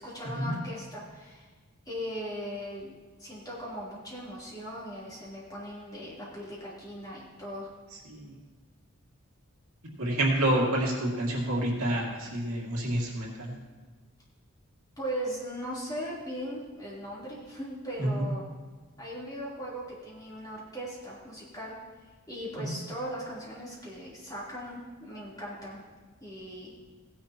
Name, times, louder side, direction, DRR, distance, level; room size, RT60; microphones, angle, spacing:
voice 1, 0.0-1.5 1.9-2.9 3.2-7.7 15.0-18.5 19.0-21.8 22.3-25.8 26.2-26.7, equal, 15° left, -7 dB, 3.5 m, -38 dB
voice 2, 10.0-13.5 18.0-18.3 22.6-22.7, right 1 dB, 70° right, -2 dB, 2.4 m, -28 dB
16.5 x 10.5 x 3.0 m, 1.4 s
head